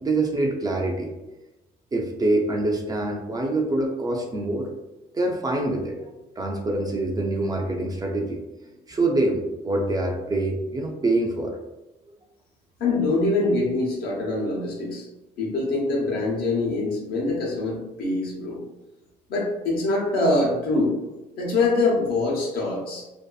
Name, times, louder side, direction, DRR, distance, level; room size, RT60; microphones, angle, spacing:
voice 1, 0.0-1.1 1.9-4.7 5.1-6.0 6.4-8.4 8.9-11.6 13.6-13.7, right 2 dB, 20° right, 0 dB, 0.4 m, -25 dB
voice 2, 12.8-15.1 15.4-18.6 19.3-21.0 21.4-23.0, left 2 dB, 65° left, -2 dB, 0.9 m, -24 dB
2.6 x 2.5 x 2.3 m, 1.0 s
cardioid pair, 110°, 17 cm